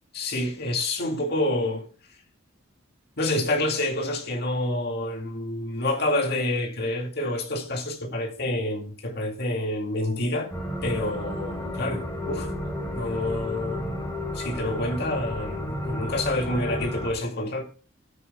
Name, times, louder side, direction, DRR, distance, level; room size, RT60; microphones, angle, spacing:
voice 1, 0.1-1.9 3.2-10.5 10.8-12.5 12.9-17.6, left 1 dB, 55° left, 2.3 m, -28 dB
sound 1, 10.5-17.1, left 1 dB, 15° left, 4.2 m, -32 dB
18.5 x 9.8 x 2.3 m
head